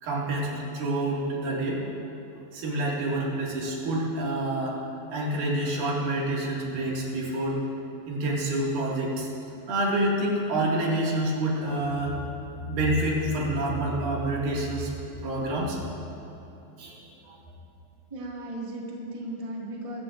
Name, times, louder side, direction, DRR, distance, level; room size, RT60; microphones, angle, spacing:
voice 1, 0.0-1.8 2.5-4.8 5.1-7.6 8.1-9.3 9.7-12.2 12.7-14.9 15.2-15.8 16.8-17.4, right 1 dB, 70° right, -4 dB, 3.7 m, -27 dB
voice 2, 18.1-20.0, right 1 dB, 25° right, -4 dB, 0.8 m, -36 dB
23.0 x 13.5 x 2.5 m, 2.9 s
omnidirectional pair, 4.2 m